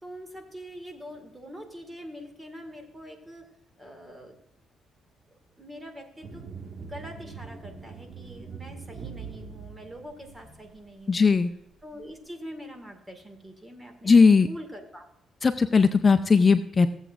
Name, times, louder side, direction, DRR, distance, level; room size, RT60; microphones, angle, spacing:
voice 1, 0.0-3.4 3.8-4.4 5.6-6.5 6.8-11.3 11.8-14.2 14.5-15.1, equal, 15° right, 5 dB, 2.0 m, -43 dB
sound 1, 6.2-10.8, right 5 dB, 50° right, 1.7 m, -42 dB
voice 2, 11.1-11.5 14.1-14.5 15.4-16.9, left 4 dB, 30° left, 8 dB, 0.5 m, -18 dB
16.5 x 8.0 x 2.5 m, 0.79 s
cardioid pair, 90°, 0 cm